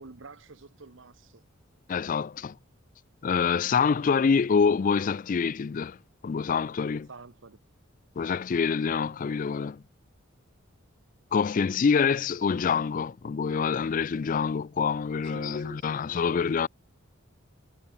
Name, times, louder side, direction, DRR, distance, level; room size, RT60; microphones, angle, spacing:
voice 1, 0.0-1.4 7.1-7.6 15.2-16.4, right 3 dB, 65° right, 1.0 m, -47 dB
voice 2, 1.9-2.6 3.2-6.0 6.2-7.1 8.2-9.8 11.3-16.7, left 6 dB, 40° left, 0.4 m, -26 dB
head